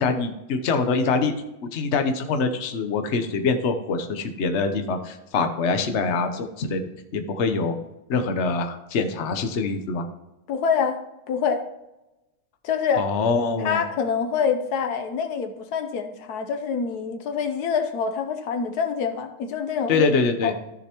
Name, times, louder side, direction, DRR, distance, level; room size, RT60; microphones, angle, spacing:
voice 1, 0.0-1.3 1.7-6.8 7.1-7.8 8.1-10.1 13.0-13.8 19.9-20.5, left 4 dB, 50° left, 7 dB, 1.1 m, -24 dB
voice 2, 10.5-11.0 11.3-11.6 12.6-13.1 13.6-20.2 20.4-20.5, left 6 dB, 80° left, 7 dB, 1.4 m, -26 dB
14.0 x 6.7 x 3.0 m, 0.96 s
omnidirectional pair, 1.6 m